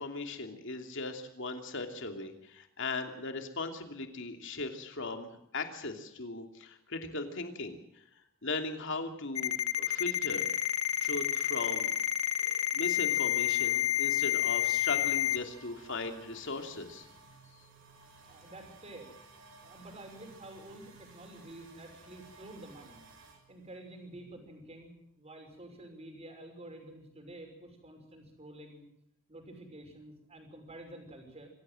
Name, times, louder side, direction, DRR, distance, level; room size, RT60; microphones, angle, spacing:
voice 1, 0.0-8.0 8.4-10.5 11.0-11.9 12.4-17.1, left 3 dB, 65° left, 5 dB, 2.9 m, -38 dB
Ringtone, 9.4-15.4, left 11 dB, 90° left, 1.5 m, -29 dB
sound 1, 13.1-25.8 26.1-28.6, right 3 dB, 70° right, 6.7 m, -58 dB
voice 2, 18.3-19.1 19.6-23.0 23.5-28.8 29.3-31.5, right 1 dB, 30° right, 4 dB, 5.9 m, -49 dB
25.5 x 16.0 x 7.8 m, 0.77 s
head